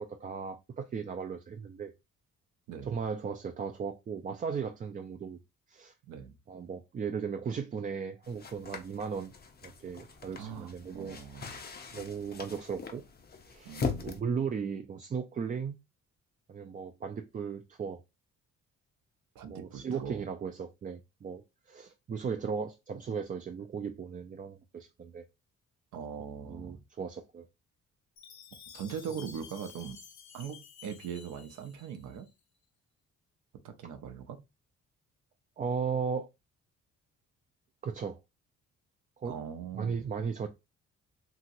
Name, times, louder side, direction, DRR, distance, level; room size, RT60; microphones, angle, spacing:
voice 1, 0.0-1.9 2.8-5.4 5.7-5.9 6.5-9.3 9.6-11.2 11.9-13.0 13.5-13.7 14.0-15.8 16.5-18.0 19.5-25.2 26.5-27.5 35.6-36.3 37.8-38.2 39.2-39.3 39.7-40.5, right 6 dB, 30° right, 0.3 m, -36 dB
voice 2, 2.7-3.0 6.1-6.3 10.3-11.6 13.6-14.2 19.3-20.2 25.9-26.8 28.7-30.0 30.3-32.3 33.6-34.4 39.2-40.0, right 7 dB, 85° right, 0.7 m, -41 dB
sound 1, 8.2-14.2, left 5 dB, 30° left, 0.6 m, -40 dB
Chime, 28.2-32.3, left 7 dB, 65° left, 0.8 m, -52 dB
2.8 x 2.8 x 2.5 m
cardioid pair, 90°, 30 cm